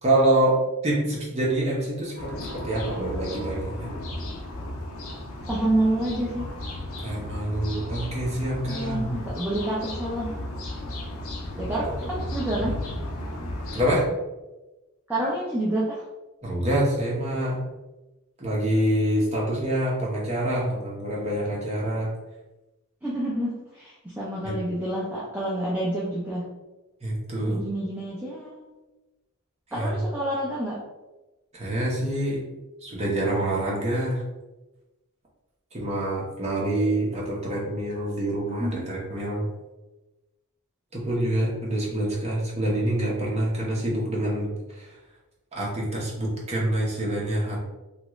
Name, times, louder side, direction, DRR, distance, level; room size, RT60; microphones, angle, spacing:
voice 1, 0.0-3.9 7.0-9.1 13.7-14.1 16.4-17.6 18.4-22.1 24.4-24.6 27.0-27.6 29.7-30.1 31.5-32.4 32.8-34.2 35.7-39.5 40.9-44.9 45.5-47.6, right 1 dB, 30° right, -4 dB, 0.8 m, -26 dB
sound 1, 2.2-14.0, left 1 dB, 65° left, 0.5 m, -34 dB
voice 2, 5.5-6.5 8.7-10.3 11.5-12.8 15.1-16.0 23.0-26.5 27.5-28.7 29.7-30.8 38.6-38.9, right 1 dB, 10° right, -6 dB, 0.4 m, -28 dB
2.9 x 2.4 x 3.0 m, 1.1 s
head